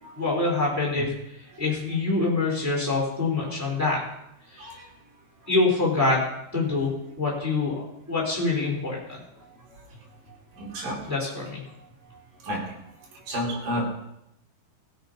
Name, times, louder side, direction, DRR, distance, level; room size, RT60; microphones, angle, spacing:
voice 1, 0.2-1.1 1.6-4.0 4.5-4.6 5.5-6.3 6.5-7.8 8.1-9.2 11.1-11.6, left 3 dB, 5° right, -4 dB, 3.3 m, -25 dB
voice 2, 10.6-11.1 12.4-12.6 13.3-13.8, equal, 50° right, -3 dB, 4.6 m, -30 dB
16.5 x 7.9 x 5.3 m, 0.81 s
omnidirectional pair, 5.3 m